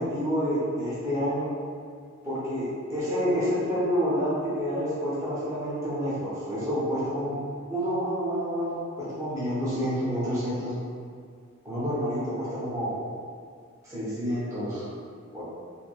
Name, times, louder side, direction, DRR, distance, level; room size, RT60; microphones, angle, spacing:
voice 1, 0.0-1.5 2.2-7.4 7.7-10.7 11.6-13.0 13.8-14.8 15.3-15.4, equal, 15° right, -10 dB, 0.5 m, -28 dB
2.8 x 2.5 x 2.2 m, 2.1 s
head